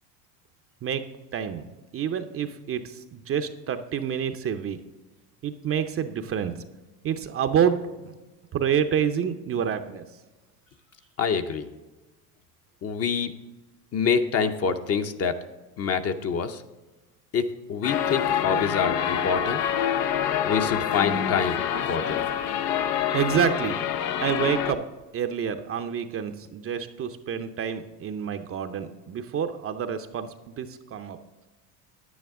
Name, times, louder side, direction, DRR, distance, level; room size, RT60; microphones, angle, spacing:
voice 1, 1.3-4.8 5.4-6.6 7.0-8.2 8.5-10.0 23.1-23.8 24.2-24.8 25.1-31.2, right 8 dB, 30° right, 8 dB, 0.6 m, -28 dB
voice 2, 11.2-11.7 12.8-13.3 13.9-15.4 15.8-16.6 17.3-19.6 20.4-21.6 21.9-22.2, left 6 dB, 30° left, 8 dB, 0.7 m, -26 dB
sound 1, 17.8-24.7, left 9 dB, 80° left, 0.8 m, -26 dB
9.9 x 9.4 x 3.6 m, 1.2 s
hypercardioid pair, 90°, 47 cm